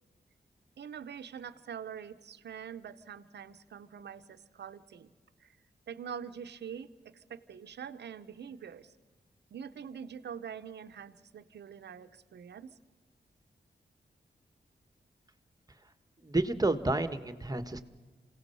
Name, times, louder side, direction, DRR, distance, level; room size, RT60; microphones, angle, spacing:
voice 1, 0.8-5.1 5.4-5.5 5.9-8.9 9.5-12.7, right 7 dB, 85° right, 11 dB, 0.8 m, -44 dB
voice 2, 16.2-17.8, right 2 dB, 20° right, 11 dB, 1.4 m, -30 dB
28.0 x 17.0 x 5.5 m, 1.3 s
cardioid pair, 60°, 17 cm